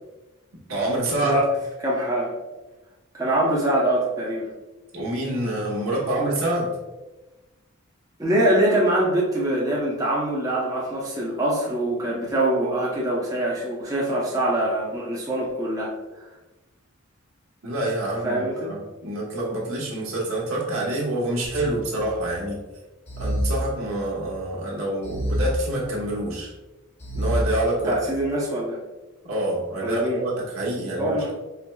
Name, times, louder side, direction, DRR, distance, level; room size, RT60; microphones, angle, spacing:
voice 1, 0.7-1.4 4.9-6.7 17.6-22.6 23.2-26.5 27.1-28.0 29.2-31.3, right 1 dB, 80° right, -4 dB, 1.2 m, -27 dB
voice 2, 1.8-2.4 3.2-4.5 8.2-16.3 18.2-18.7 27.8-28.8 29.8-30.2 31.0-31.3, right 1 dB, 15° right, -5 dB, 0.7 m, -24 dB
sound 1, 21.4-22.4 23.1-24.4 25.0-26.3 27.0-28.2, equal, 30° left, 0.8 m, -29 dB
4.6 x 3.2 x 2.3 m, 1.1 s
head